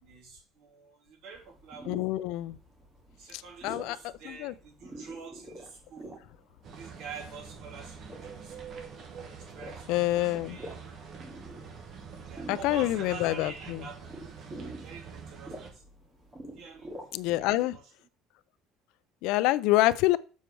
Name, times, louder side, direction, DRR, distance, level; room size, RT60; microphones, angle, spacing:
voice 1, 0.0-2.0 3.2-6.2 6.7-8.9 9.4-10.7 12.3-15.8 16.5-17.8, right 5 dB, 55° right, 3.2 m, -47 dB
sound 1, 1.3-17.4, right 1 dB, 15° right, 2.2 m, -48 dB
voice 2, 1.9-2.6 3.3-4.5 9.9-10.6 12.5-13.8 17.1-17.8 19.2-20.2, left 17 dB, 65° left, 0.4 m, -27 dB
sound 2, 6.6-15.7, right 6 dB, 35° right, 1.4 m, -45 dB
7.2 x 4.5 x 6.2 m
cardioid pair, 175°, 0 cm